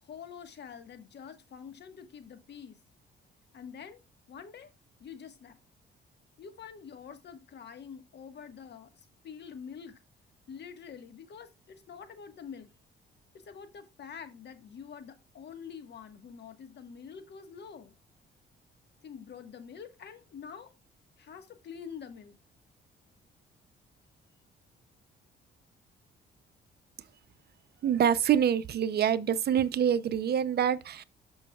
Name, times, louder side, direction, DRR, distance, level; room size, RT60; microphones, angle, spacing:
voice 1, 0.0-2.8 3.5-4.0 4.3-4.7 5.0-5.6 6.4-10.0 10.5-12.7 13.3-17.9 19.0-20.7 21.2-22.4, left 7 dB, 60° left, 1.4 m, -46 dB
voice 2, 27.8-31.0, right 9 dB, 55° right, 0.6 m, -26 dB
12.0 x 5.4 x 2.3 m
cardioid pair, 90°, 20 cm